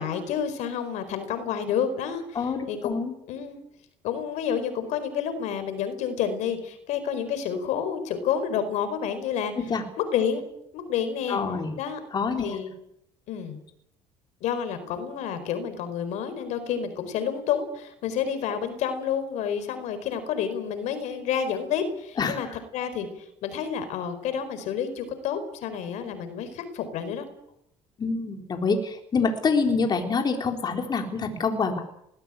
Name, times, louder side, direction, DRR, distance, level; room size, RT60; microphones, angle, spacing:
voice 1, 0.0-3.0 3.3-3.6 4.0-9.5 10.0-10.4 10.7-11.4 11.7-12.0 12.4-12.7 13.3-13.6 14.4-22.5 22.7-27.2, left 8 dB, 70° left, 11 dB, 4.6 m, -29 dB
voice 2, 2.4-3.1 9.7-9.8 11.3-11.7 12.1-12.6 22.2-22.4 28.0-31.8, left 4 dB, 35° left, 4 dB, 3.7 m, -26 dB
20.5 x 16.0 x 9.1 m, 0.76 s
cardioid pair, 105°, 12 cm